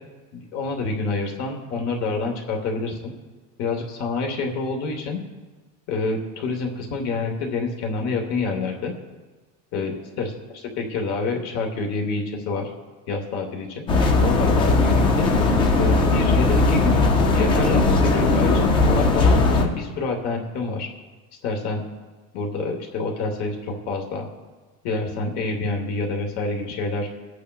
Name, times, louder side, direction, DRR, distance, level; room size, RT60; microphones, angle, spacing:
voice 1, 0.3-3.1 3.6-5.2 5.9-8.9 9.7-12.7 13.1-13.8 14.2-15.3 15.8-20.9 21.4-21.8 22.3-24.3 24.8-27.1, left 3 dB, 40° left, 2 dB, 1.1 m, -27 dB
sound 1, 13.9-19.7, left 3 dB, 15° left, 0.3 m, -18 dB
22.0 x 8.3 x 2.3 m, 1.3 s
cardioid pair, 175°, 42 cm